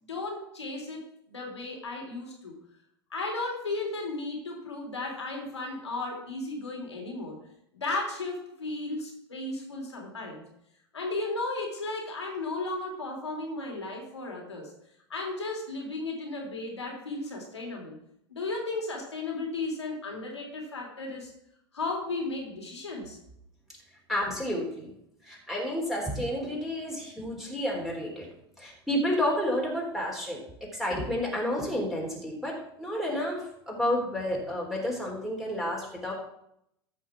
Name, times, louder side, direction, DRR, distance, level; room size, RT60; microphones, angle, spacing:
voice 1, 0.1-2.5 3.1-7.4 7.7-10.4 10.9-14.7 15.1-18.0 18.3-21.3 21.7-23.2, left 2 dB, 85° left, 0 dB, 3.5 m, -35 dB
voice 2, 24.1-24.9 25.2-28.3 28.6-36.1, left 1 dB, ahead, -3 dB, 3.7 m, -30 dB
14.0 x 5.8 x 6.1 m, 0.77 s
figure-of-eight pair, 85°, 14 cm